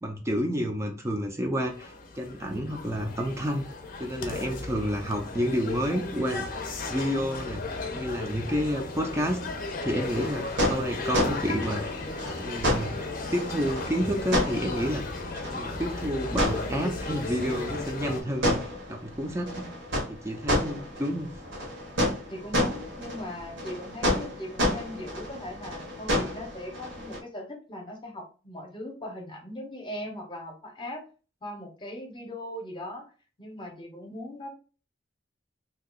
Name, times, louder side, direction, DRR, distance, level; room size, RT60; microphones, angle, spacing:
voice 1, 0.0-3.6 4.0-7.6 7.9-9.4 9.8-12.0 12.4-13.0 13.3-15.0 15.5-18.6 18.9-19.6 20.1-21.3, equal, 15° right, 3 dB, 0.5 m, -30 dB
sound 1, 1.7-18.2, left 3 dB, 50° left, 0.6 m, -36 dB
voice 2, 4.4-4.7 22.3-31.0 31.4-33.0 33.4-34.5, left 1 dB, 25° left, 2 dB, 0.8 m, -39 dB
sound 2, 10.0-27.2, left 1 dB, 80° right, 1.2 m, -31 dB
2.7 x 2.3 x 3.9 m, 0.36 s
head